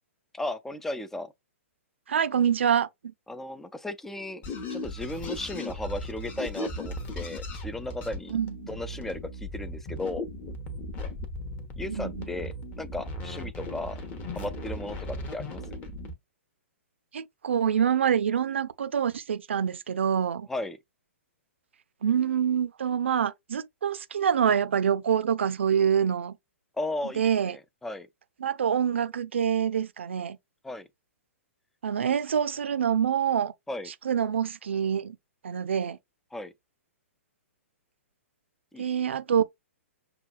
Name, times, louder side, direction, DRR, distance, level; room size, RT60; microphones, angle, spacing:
voice 1, 0.3-1.3 3.3-4.4 4.7-8.4 8.7-10.2 11.8-14.0 14.4-15.6 20.5-20.8 26.8-28.1 30.6-30.9 32.0-32.1 33.7-33.9 36.3-36.5 38.7-38.8, left 2 dB, 5° left, 0.3 m, -35 dB
voice 2, 2.1-2.9 8.3-8.8 11.9-12.3 17.1-20.5 22.0-26.4 27.2-27.6 28.4-30.4 31.8-33.5 34.0-35.2 35.4-36.0 38.8-39.4, right 8 dB, 60° right, 0.5 m, -26 dB
sound 1, 4.4-16.1, left 1 dB, 25° left, 0.9 m, -37 dB
6.7 x 2.3 x 2.3 m
figure-of-eight pair, 115°, 7 cm